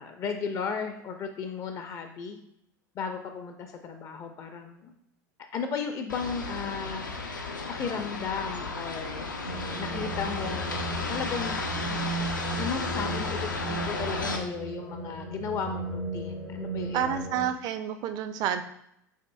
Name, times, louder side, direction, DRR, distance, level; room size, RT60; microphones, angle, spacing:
voice 1, 0.0-2.4 2.9-4.9 5.5-7.1 7.4-9.3 9.8-11.5 11.9-12.0 12.6-13.4 13.7-17.1, left 6 dB, 35° left, 6 dB, 0.5 m, -35 dB
sound 1, 6.1-14.4, left 3 dB, 80° left, 0.5 m, -34 dB
sound 2, 9.4-17.5, right 2 dB, 90° right, 1.3 m, -36 dB
voice 2, 16.9-18.6, right 9 dB, 40° right, 9 dB, 0.4 m, -29 dB
7.0 x 2.5 x 2.3 m, 0.76 s
figure-of-eight pair, 80°, 10 cm